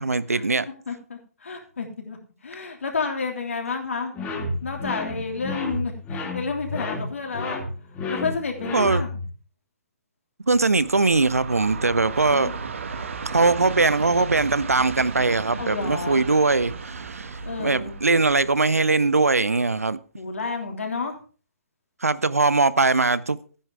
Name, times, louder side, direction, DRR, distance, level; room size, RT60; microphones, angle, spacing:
voice 1, 0.0-0.7 8.7-9.0 10.5-12.5 13.3-20.0 22.0-23.4, right 3 dB, 75° right, 0.7 m, -21 dB
voice 2, 0.9-4.1 4.6-7.6 8.1-9.1 12.3-12.5 15.6-16.2 17.4-18.0 20.1-21.2, left 4 dB, 60° left, 3.3 m, -30 dB
sound 1, 4.1-9.3, left 2 dB, 15° left, 3.0 m, -31 dB
Train, 10.5-19.7, right 4 dB, 60° right, 1.4 m, -35 dB
14.0 x 10.0 x 3.6 m
figure-of-eight pair, 130°, 8 cm